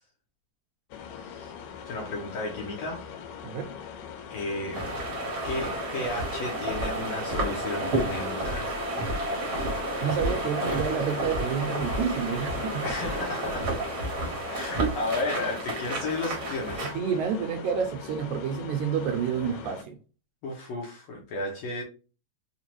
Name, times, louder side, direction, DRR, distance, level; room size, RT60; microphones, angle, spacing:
sound 1, 0.9-19.8, left 8 dB, 90° left, 2.2 m, -42 dB
voice 1, 1.8-3.1 4.3-4.9 5.4-8.7 12.8-13.7 14.5-16.9 20.4-21.8, left 2 dB, 70° left, 1.6 m, -33 dB
sound 2, 4.7-16.9, right 1 dB, 55° right, 1.0 m, -31 dB
voice 2, 10.0-12.8 14.8-14.9 16.9-20.0, right 7 dB, 80° right, 1.8 m, -29 dB
5.3 x 2.4 x 2.9 m
omnidirectional pair, 3.8 m